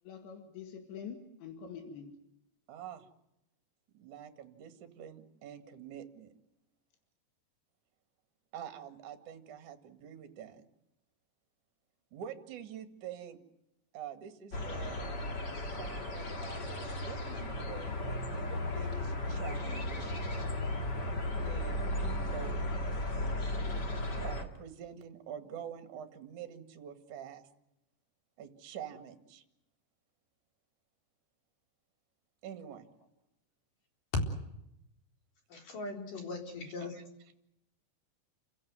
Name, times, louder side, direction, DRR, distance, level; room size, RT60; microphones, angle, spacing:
voice 1, 0.0-2.1, left 6 dB, 85° left, 5 dB, 4.4 m, -45 dB
voice 2, 2.7-3.1 3.9-6.3 8.5-10.6 12.1-13.4 13.9-15.1 15.7-20.2 21.4-22.6 24.2-27.5 28.4-29.4 32.4-32.9 36.9-37.0, right 9 dB, 50° right, 9 dB, 3.1 m, -46 dB
sound 1, 14.5-24.4, left 1 dB, 35° left, 2.0 m, -35 dB
voice 3, 35.5-37.0, left 3 dB, 50° left, 3 dB, 5.4 m, -41 dB
29.5 x 16.0 x 9.5 m, 0.83 s
omnidirectional pair, 5.0 m